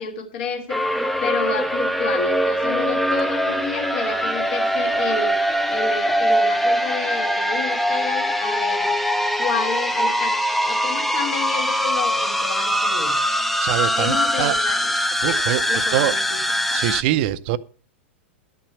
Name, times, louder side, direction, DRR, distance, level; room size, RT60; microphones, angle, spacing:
voice 1, 0.0-8.9 9.4-10.3 10.7-13.2 13.9-15.0 15.2-15.4 15.7-16.4, left 6 dB, 60° left, 2.7 m, -30 dB
sound 1, 0.7-17.0, equal, ahead, 0.7 m, -22 dB
voice 2, 13.3-14.6 15.2-16.1 16.7-17.6, right 13 dB, 55° right, 0.6 m, -24 dB
11.5 x 5.9 x 7.1 m
hypercardioid pair, 115°, 6 cm